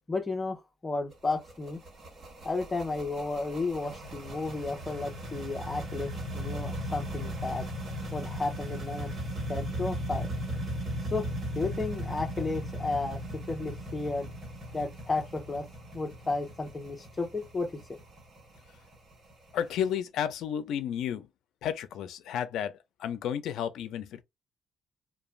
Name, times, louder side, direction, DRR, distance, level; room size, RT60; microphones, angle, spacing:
voice 1, 0.1-1.8 2.4-7.7 8.1-9.1 9.5-10.3 11.1-11.3 11.5-14.3 14.7-15.7 15.9-17.7, left 3 dB, 20° left, 0.8 m, -33 dB
sound 1, 1.1-19.9, equal, 40° right, 1.2 m, -37 dB
voice 2, 19.5-21.3 21.6-24.2, left 9 dB, 85° left, 0.4 m, -32 dB
2.4 x 2.2 x 3.1 m
cardioid pair, 125°, 0 cm